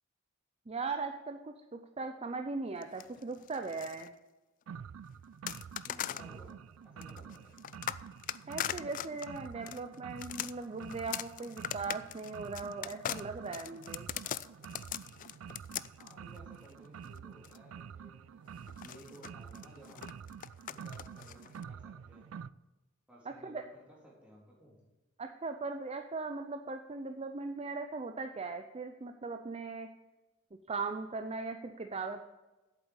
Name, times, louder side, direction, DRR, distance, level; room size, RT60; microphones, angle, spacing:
voice 1, 0.7-4.1 8.5-14.1 23.3-23.6 25.2-29.9 30.7-32.2, right 3 dB, 30° right, 7 dB, 0.5 m, -39 dB
sound 1, 2.8-4.1 5.5-6.3 7.0-17.6 18.7-21.6, left 11 dB, 40° left, 0.3 m, -41 dB
sound 2, 4.7-22.5, right 7 dB, 80° right, 0.4 m, -48 dB
voice 2, 5.8-7.6 15.9-20.1 20.7-22.3 23.1-24.8, equal, 5° right, -5 dB, 3.5 m, -57 dB
8.1 x 8.0 x 8.1 m, 1.1 s
head